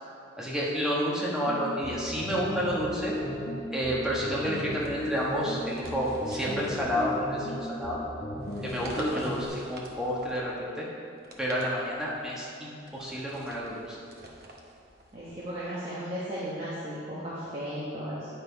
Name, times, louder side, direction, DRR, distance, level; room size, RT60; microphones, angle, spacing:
voice 1, 0.4-3.1 3.7-8.0 8.6-10.8 11.4-14.0, equal, 5° right, -6 dB, 1.2 m, -30 dB
sound 1, 1.5-9.5, left 1 dB, 55° left, 1.1 m, -36 dB
sound 2, 4.8-7.5 8.4-10.6 11.1-12.3 12.8-15.7, right 1 dB, 50° right, 0.9 m, -47 dB
voice 2, 15.1-18.3, equal, 30° right, -9 dB, 1.2 m, -35 dB
9.3 x 5.5 x 4.6 m, 2.5 s
head